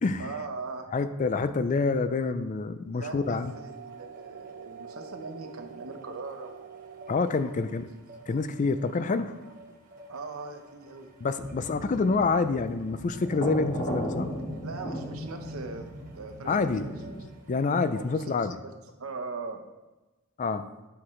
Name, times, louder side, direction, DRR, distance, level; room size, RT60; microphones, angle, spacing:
voice 1, 0.2-1.0 2.9-6.7 7.4-7.9 10.1-11.1 14.6-16.9 17.9-18.3 18.6-18.7 19.0-19.6, right 3 dB, 75° right, 5 dB, 0.9 m, -40 dB
voice 2, 0.9-3.5 7.1-7.9 8.3-9.3 11.2-14.3 16.5-16.9 17.5-18.6 20.4-20.7, left 4 dB, 35° left, 11 dB, 0.3 m, -27 dB
sound 1, 3.1-7.1, right 7 dB, 60° right, 0.3 m, -45 dB
sound 2, 3.2-18.2, right 2 dB, 40° right, 1.0 m, -54 dB
sound 3, 11.4-17.2, equal, 85° left, 2.7 m, -37 dB
9.7 x 5.9 x 3.2 m, 1.1 s
head